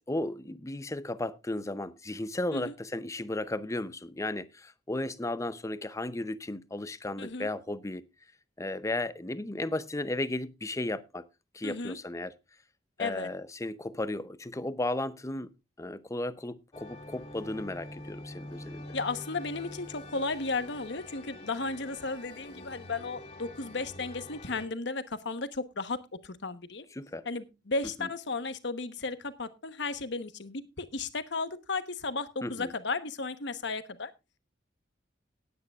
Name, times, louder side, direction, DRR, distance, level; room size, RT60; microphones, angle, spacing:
voice 1, 0.1-8.0 8.6-11.2 11.5-12.3 13.0-15.5 15.8-18.9 26.9-27.3 28.0-28.1 32.4-32.7, left 1 dB, 15° left, 0.7 m, -35 dB
voice 2, 7.2-7.5 11.6-12.0 13.0-13.3 18.9-26.8 27.2-34.1, left 3 dB, 65° left, 1.1 m, -34 dB
sound 1, 16.7-24.7, left 1 dB, 30° left, 3.0 m, -45 dB
18.5 x 9.5 x 2.4 m
head